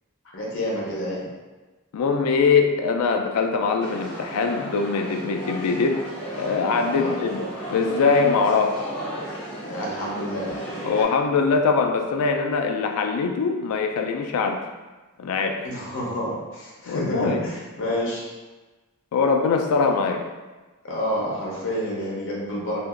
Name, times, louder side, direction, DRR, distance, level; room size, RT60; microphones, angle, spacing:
voice 1, 0.3-1.3 6.9-7.2 9.6-10.6 15.6-18.3 20.8-22.8, equal, 65° left, -4 dB, 0.8 m, -29 dB
voice 2, 1.9-6.0 6.4-8.9 10.8-14.6 15.2-15.7 16.9-17.4 19.1-20.3, left 4 dB, 90° left, 4 dB, 0.3 m, -22 dB
sound 1, 3.8-11.0, right 1 dB, 5° left, 0.8 m, -34 dB
2.8 x 2.5 x 2.4 m, 1.2 s
head